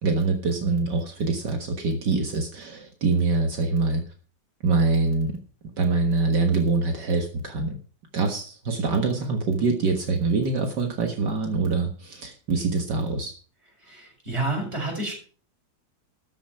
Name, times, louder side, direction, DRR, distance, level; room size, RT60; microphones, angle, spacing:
voice 1, 0.0-4.0 4.6-5.4 5.8-7.8 8.1-13.3, right 3 dB, 65° right, 3 dB, 2.2 m, -24 dB
voice 2, 13.9-15.1, right 2 dB, 35° right, 0 dB, 5.8 m, -29 dB
14.0 x 7.1 x 5.8 m, 0.40 s
omnidirectional pair, 2.0 m